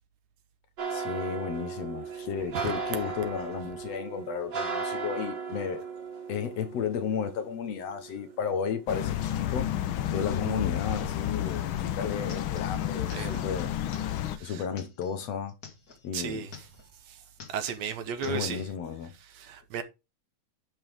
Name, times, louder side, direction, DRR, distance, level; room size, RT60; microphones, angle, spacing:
sound 1, 0.8-10.0 10.4-11.4 11.7-12.1 12.4-12.6, right 4 dB, 40° right, 2.9 m, -37 dB
voice 1, 0.9-5.8 6.3-9.7 10.1-13.7 14.4-15.5 16.0-16.5 18.3-19.1, left 7 dB, 65° left, 2.1 m, -33 dB
sound 2, 8.9-14.4, left 11 dB, 85° left, 1.1 m, -31 dB
sound 3, 12.3-16.1 16.4-17.0 17.3-18.7, left 5 dB, 40° left, 1.7 m, -49 dB
voice 2, 13.1-13.5 14.4-14.6 16.1-16.5 17.1-17.2 17.5-18.7 19.3-19.8, right 7 dB, 70° right, 2.1 m, -35 dB
11.0 x 5.7 x 3.5 m
omnidirectional pair, 3.4 m